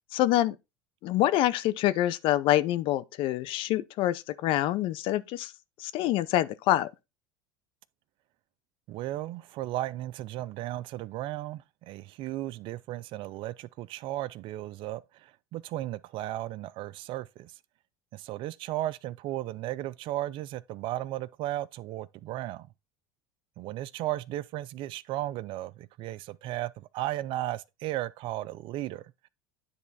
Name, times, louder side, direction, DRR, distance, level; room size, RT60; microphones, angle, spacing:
voice 1, 0.1-0.6 1.0-5.5 5.8-6.9, left 14 dB, 55° left, 0.6 m, -26 dB
voice 2, 8.9-17.5 18.1-22.7 23.6-29.1, right 15 dB, 55° right, 0.5 m, -35 dB
9.7 x 3.6 x 4.1 m
supercardioid pair, 105°, 11 cm